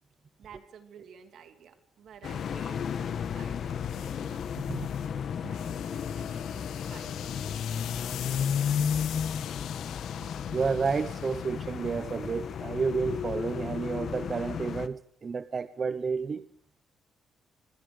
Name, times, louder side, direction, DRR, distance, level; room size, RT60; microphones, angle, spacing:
voice 1, 0.4-4.9 5.5-8.6, right 7 dB, 70° right, 2.8 m, -53 dB
sound 1, 2.2-14.9, left 7 dB, 60° left, 1.3 m, -33 dB
sound 2, 3.5-12.1, left 11 dB, 80° left, 1.1 m, -44 dB
voice 2, 10.2-16.5, right 5 dB, 40° right, 0.7 m, -31 dB
25.5 x 21.0 x 5.1 m
cardioid pair, 90°, 0 cm